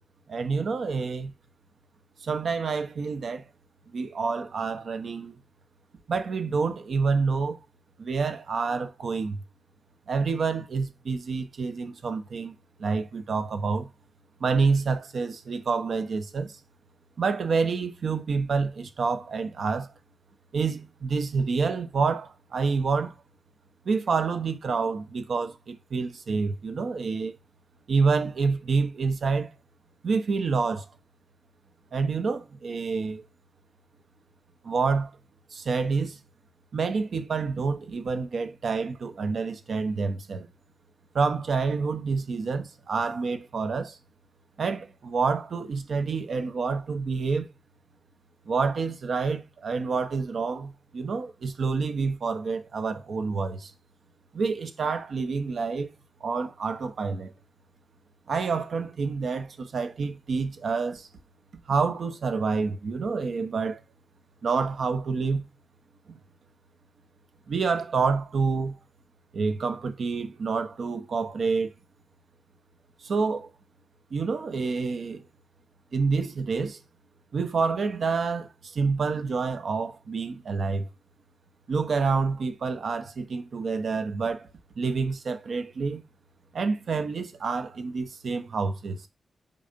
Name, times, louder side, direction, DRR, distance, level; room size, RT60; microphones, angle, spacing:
voice 1, 0.3-1.3 2.2-3.4 3.9-5.3 6.1-7.6 8.0-9.4 10.1-12.5 12.8-13.9 14.4-16.6 17.2-19.9 20.5-23.1 23.8-27.4 27.9-29.5 30.0-30.9 31.9-33.2 34.6-35.1 35.5-36.2 36.7-40.5 41.1-44.0 44.6-47.5 48.5-53.7 54.3-55.9 56.2-57.3 58.3-61.1 61.7-63.8 64.4-65.4 67.5-68.8 69.3-71.7 73.0-73.5 74.1-75.2 75.9-76.8 77.3-80.9 81.7-84.5 84.8-86.0 86.5-89.1, right 4 dB, 55° right, 0.9 m, -28 dB
5.4 x 4.0 x 5.2 m
wide cardioid pair, 170°, 0 cm